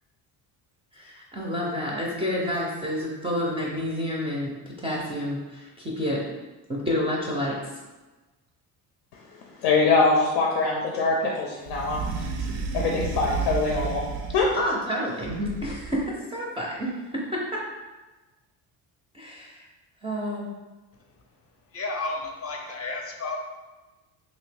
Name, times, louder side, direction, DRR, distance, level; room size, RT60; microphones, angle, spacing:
voice 1, 0.9-6.2 6.7-7.6 14.5-17.6 19.1-19.7 20.0-20.5, equal, 15° right, -4 dB, 0.4 m, -29 dB
voice 2, 9.6-12.0 12.4-14.0 14.3-14.5, left 3 dB, 90° left, -1 dB, 0.6 m, -23 dB
sound 1, 11.6-14.7 15.2-16.1, right 5 dB, 85° right, 0.6 m, -32 dB
voice 3, 21.7-23.4, left 3 dB, 35° left, 2 dB, 0.5 m, -32 dB
2.9 x 2.6 x 3.3 m, 1.2 s
cardioid pair, 120°, 40 cm